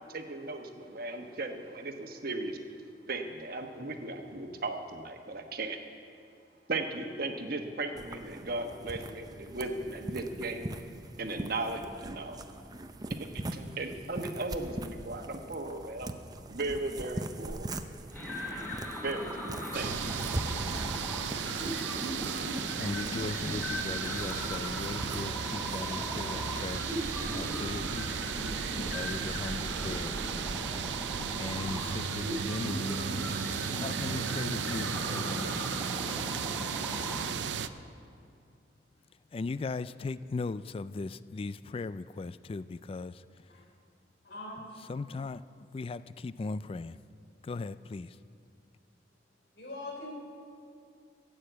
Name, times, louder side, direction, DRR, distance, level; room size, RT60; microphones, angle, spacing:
voice 1, 0.0-2.6 3.1-5.8 6.7-10.7 11.2-12.4 13.2-16.1 16.5-17.7 19.0-20.2, right 2 dB, 55° right, 5 dB, 1.2 m, -36 dB
sound 1, 8.0-27.9, right 1 dB, 20° right, 0.6 m, -42 dB
sound 2, 18.1-37.3, equal, 5° left, 4.4 m, -38 dB
sound 3, 19.7-37.7, right 7 dB, 85° right, 0.5 m, -35 dB
voice 2, 22.8-26.8 27.3-28.1 28.9-30.2 31.4-33.0 33.7-35.7 39.3-43.2 44.8-45.4 45.7-47.0 47.4-48.2, left 3 dB, 30° left, 16 dB, 0.3 m, -38 dB
voice 3, 44.2-44.7 49.5-50.1, left 2 dB, 70° left, -1 dB, 3.4 m, -42 dB
15.0 x 8.8 x 8.0 m, 2.5 s
head